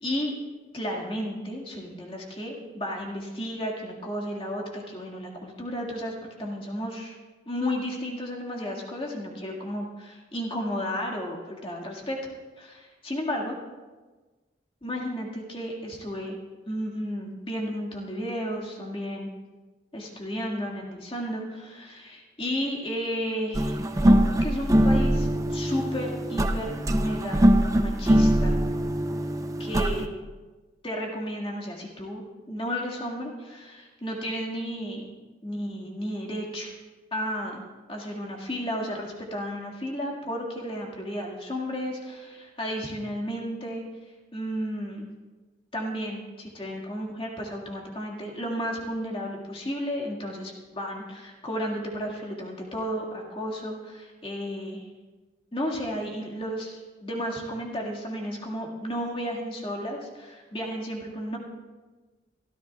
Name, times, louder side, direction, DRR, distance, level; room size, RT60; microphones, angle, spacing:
voice 1, 0.0-0.4 0.7-7.2 7.5-12.3 12.6-12.8 13.0-13.6 14.8-16.4 16.7-19.3 19.9-27.4 27.7-28.6 29.6-30.1 30.8-35.1 35.4-36.7 37.1-37.6 37.9-43.8 44.3-45.1 45.7-54.9 55.5-61.4, equal, 30° left, -2 dB, 1.9 m, -33 dB
sound 1, 23.5-30.0, equal, 20° right, 0.5 m, -22 dB
23.0 x 14.0 x 2.4 m, 1.3 s
head